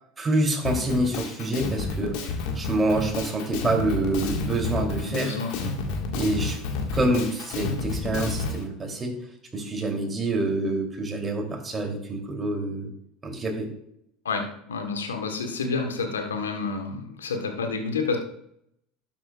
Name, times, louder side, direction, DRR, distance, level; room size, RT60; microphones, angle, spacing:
voice 1, 0.2-2.1 2.5-5.4 6.1-6.6 6.9-9.2 9.5-12.9 13.2-13.7, right 2 dB, 25° right, 0 dB, 3.1 m, -26 dB
Drum kit, 0.6-8.6, left 3 dB, 65° left, 1.7 m, -30 dB
voice 2, 5.0-5.5 14.2-18.2, left 4 dB, 85° left, 4 dB, 1.3 m, -29 dB
12.5 x 7.5 x 2.4 m, 0.72 s
hypercardioid pair, 75°, 0 cm